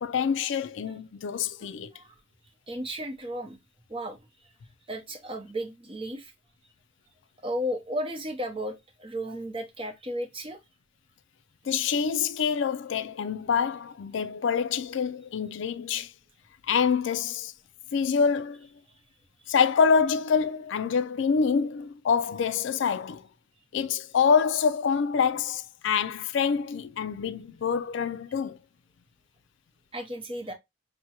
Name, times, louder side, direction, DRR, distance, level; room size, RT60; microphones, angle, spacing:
voice 1, 0.0-1.9 11.7-16.1 16.7-17.5 17.9-18.7 19.5-23.2 23.7-28.6, left 6 dB, 65° left, 0.3 m, -26 dB
voice 2, 2.7-3.6 3.9-4.2 4.9-6.3 7.4-10.6 29.9-30.5, equal, 25° right, 0.7 m, -34 dB
5.8 x 2.1 x 2.9 m
head